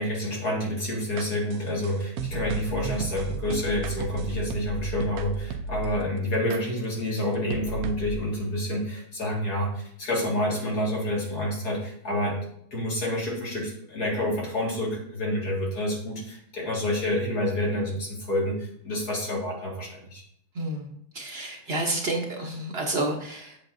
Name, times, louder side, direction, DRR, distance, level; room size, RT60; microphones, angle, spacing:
voice 1, 0.0-12.4 12.7-20.2, left 1 dB, 80° left, -3 dB, 2.5 m, -28 dB
sound 1, 1.2-6.0 6.5-6.6 7.2-7.3 7.5-8.2, right 4 dB, 70° right, 1.0 m, -34 dB
voice 2, 20.5-23.6, right 2 dB, 45° right, 1 dB, 1.0 m, -30 dB
7.7 x 6.5 x 2.6 m, 0.68 s
omnidirectional pair, 1.7 m